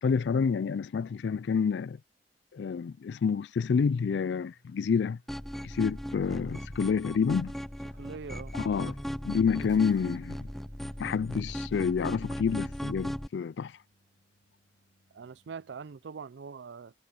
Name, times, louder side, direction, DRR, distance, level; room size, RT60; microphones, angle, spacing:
voice 1, 0.0-2.0 2.5-5.2 5.6-7.5 8.5-9.0 9.2-10.5 11.0-13.8, left 6 dB, 75° left, 0.4 m, -28 dB
sound 1, 4.2-16.1, equal, 90° left, 7.5 m, -67 dB
sound 2, 5.3-13.3, equal, ahead, 0.4 m, -37 dB
voice 2, 7.9-8.5 15.1-16.9, right 5 dB, 75° right, 0.4 m, -43 dB
sound 3, 9.6-11.7, right 1 dB, 25° right, 4.3 m, -61 dB
head